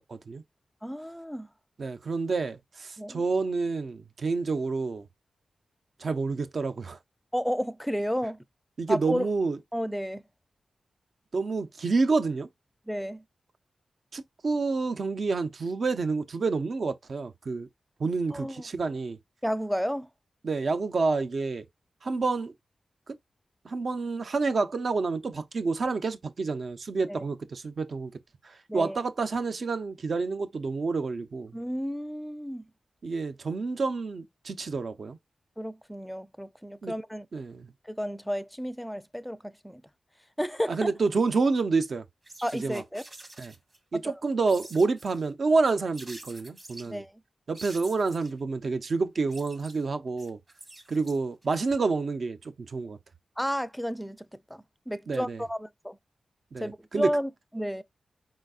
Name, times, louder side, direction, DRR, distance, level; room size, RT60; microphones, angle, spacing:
voice 1, 0.1-0.4 1.8-5.1 6.0-7.0 8.8-9.6 11.3-12.5 14.1-17.7 18.0-19.2 20.4-21.6 22.0-22.5 23.6-28.1 28.4-31.5 33.0-35.2 36.8-36.9 37.3-37.7 40.7-42.0 42.6-42.8 43.4-43.5 43.9-47.0 47.5-50.4 50.9-53.0 55.1-55.4 56.5-57.1, right 4 dB, 65° right, 0.6 m, -28 dB
voice 2, 0.8-1.5 3.0-3.2 7.3-8.4 8.9-9.3 9.7-10.2 12.9-13.2 18.3-18.6 19.4-20.1 27.1-27.2 28.7-29.0 31.5-32.6 35.6-37.3 37.8-39.8 40.4-40.9 42.4-43.0 44.0-44.1 46.9-47.1 53.4-56.0 56.6-57.8, equal, ahead, 0.4 m, -32 dB
sound 1, 42.2-43.8 44.5-45.3 45.9-46.9 47.5-48.4 49.1-51.5, right 2 dB, 40° right, 1.3 m, -47 dB
4.7 x 3.9 x 2.4 m
cardioid pair, 70°, 0 cm